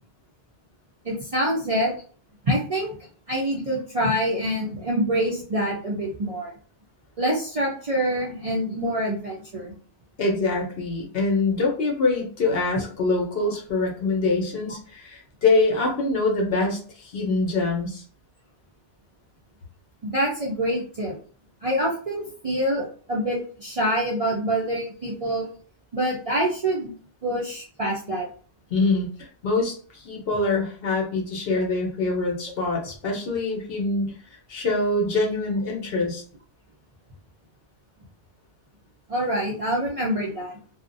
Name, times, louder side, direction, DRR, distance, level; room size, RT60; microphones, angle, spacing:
voice 1, 1.0-1.9 2.4-2.9 3.3-6.5 7.2-9.7 20.0-21.1 21.6-25.5 25.9-26.9 27.2-28.3 39.1-40.6, right 1 dB, 50° right, -5 dB, 0.4 m, -26 dB
voice 2, 10.2-18.0 28.7-34.1 34.5-36.2, left 3 dB, 65° left, -1 dB, 0.9 m, -24 dB
2.4 x 2.0 x 2.5 m, 0.43 s
omnidirectional pair, 1.1 m